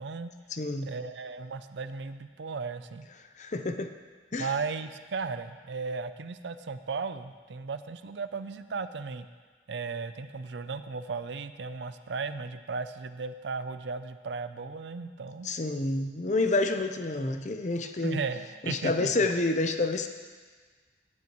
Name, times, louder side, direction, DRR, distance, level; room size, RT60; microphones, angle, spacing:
voice 1, 0.0-0.3 0.8-3.1 4.4-9.3 9.7-15.5 18.0-19.3, right 4 dB, 75° right, 11 dB, 0.5 m, -36 dB
voice 2, 0.5-0.9 3.4-3.9 4.3-4.5 15.4-18.2 18.6-20.1, left 2 dB, 40° left, 7 dB, 0.6 m, -28 dB
16.5 x 9.6 x 3.1 m, 1.5 s
head